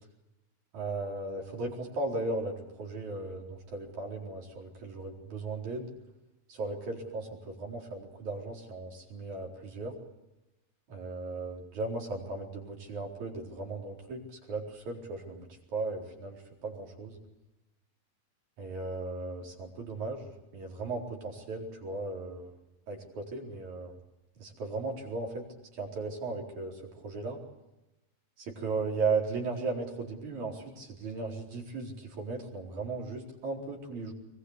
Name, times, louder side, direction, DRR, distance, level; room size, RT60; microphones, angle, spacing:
voice 1, 0.7-5.9 6.5-10.0 10.9-17.2 18.6-20.2 20.5-22.5 22.9-23.9 24.4-25.5 25.7-27.4 28.4-34.1, right 3 dB, 60° right, 0 dB, 5.7 m, -36 dB
24.5 x 22.0 x 8.2 m, 0.98 s
omnidirectional pair, 3.7 m